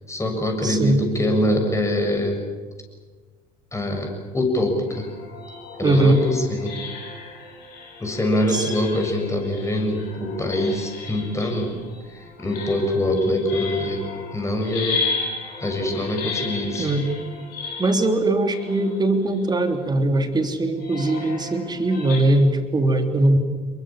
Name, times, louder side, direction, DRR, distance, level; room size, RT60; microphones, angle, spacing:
voice 1, 0.1-2.4 3.7-5.1 5.8-6.7 8.0-11.8 12.1-14.0 14.3-15.1 15.6-16.9, left 1 dB, 15° left, 3 dB, 7.3 m, -24 dB
voice 2, 0.6-1.0 5.8-6.2 8.5-8.7 16.8-17.1 17.8-23.4, right 1 dB, 20° right, 6 dB, 3.4 m, -20 dB
sound 1, 4.9-19.8 20.8-22.2, left 4 dB, 50° left, 7.8 m, -34 dB
28.5 x 23.5 x 7.5 m, 1.4 s
figure-of-eight pair, 60°, 20 cm